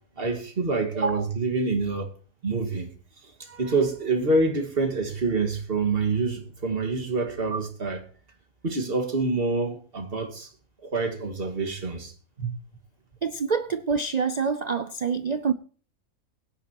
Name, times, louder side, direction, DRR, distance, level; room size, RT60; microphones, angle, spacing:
voice 1, 0.2-2.1 2.4-2.9 3.2-8.0 8.6-10.5 10.8-12.1 12.4-12.5, right 3 dB, 40° right, 2.1 m, -27 dB
voice 2, 13.2-15.5, right 5 dB, 80° right, 0.3 m, -26 dB
19.5 x 10.5 x 2.9 m
omnidirectional pair, 1.6 m